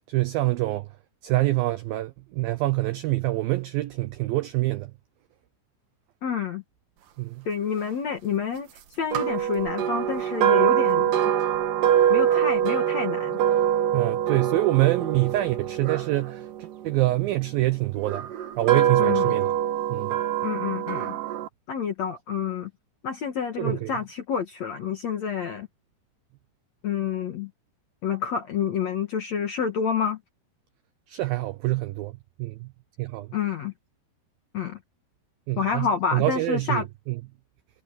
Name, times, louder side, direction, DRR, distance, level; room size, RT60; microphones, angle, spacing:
voice 1, 0.1-0.9 1.2-4.9 7.2-7.5 13.9-18.3 18.6-19.5 19.9-20.1 23.6-23.9 31.1-32.7 33.0-33.3 35.5-37.2, right 18 dB, 85° right, 2.1 m, -26 dB
voice 2, 6.2-6.6 7.5-8.7 9.0-11.2 12.1-13.4 19.0-19.3 20.4-21.2 21.7-22.7 23.0-25.7 26.8-27.5 28.0-30.2 33.3-33.7 34.5-34.8 35.6-36.9, left 7 dB, 60° left, 1.9 m, -28 dB
sound 1, 9.1-17.3 18.0-21.5, right 10 dB, 60° right, 2.6 m, -24 dB
omnidirectional pair, 5.2 m